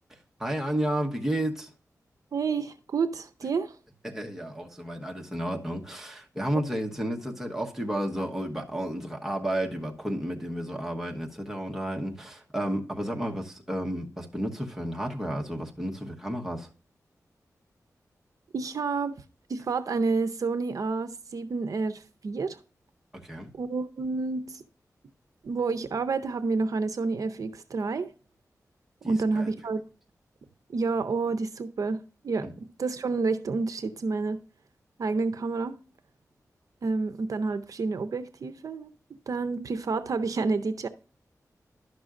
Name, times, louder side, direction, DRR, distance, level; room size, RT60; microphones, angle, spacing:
voice 1, 0.4-1.7 4.0-16.7 23.2-23.5 29.0-29.5 32.4-32.5, right 1 dB, 5° right, 1.1 m, -32 dB
voice 2, 2.3-3.8 18.5-19.2 19.5-22.6 23.5-24.6 25.4-28.1 29.0-29.8 30.7-34.4 35.0-35.8 36.8-38.9 39.3-40.9, right 4 dB, 65° right, 0.5 m, -29 dB
11.5 x 6.1 x 2.5 m
wide cardioid pair, 120°, 6 cm